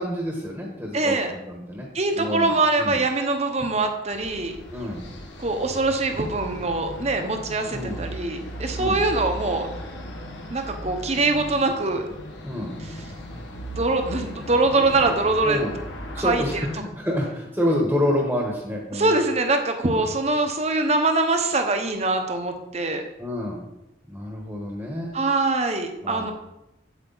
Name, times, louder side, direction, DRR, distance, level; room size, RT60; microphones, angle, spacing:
voice 1, 0.0-1.9 2.1-3.0 4.7-5.0 7.7-8.0 8.7-9.0 12.4-12.7 15.4-15.7 16.1-19.1 19.9-20.1 23.2-23.6 24.1-25.2 26.0-26.3, left 1 dB, 10° right, -1 dB, 1.2 m, -28 dB
voice 2, 0.9-1.3 1.9-4.5 5.4-9.7 10.5-12.0 12.8-13.0 13.8-15.6 16.2-16.7 18.9-23.0 25.1-26.3, right 2 dB, 35° right, 6 dB, 0.9 m, -23 dB
sound 1, 4.1-16.8, equal, 80° left, 1.6 m, -37 dB
8.1 x 8.1 x 4.0 m, 0.90 s
head